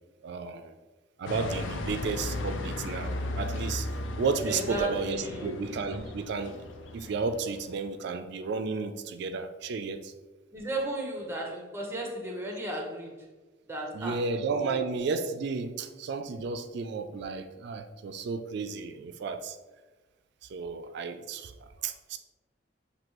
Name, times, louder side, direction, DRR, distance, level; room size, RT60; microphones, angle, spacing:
voice 1, 0.2-0.7 1.2-3.9 4.2-6.6 6.9-10.1 13.9-19.6 20.4-21.5 21.8-22.2, right 4 dB, 65° right, 8 dB, 0.3 m, -33 dB
sound 1, 1.3-7.8, left 2 dB, 80° left, 0.4 m, -36 dB
voice 2, 4.5-5.6 10.5-13.2 13.7-14.2 14.5-14.8, right 1 dB, 15° right, 0 dB, 0.8 m, -35 dB
6.0 x 2.7 x 2.9 m, 1.2 s
head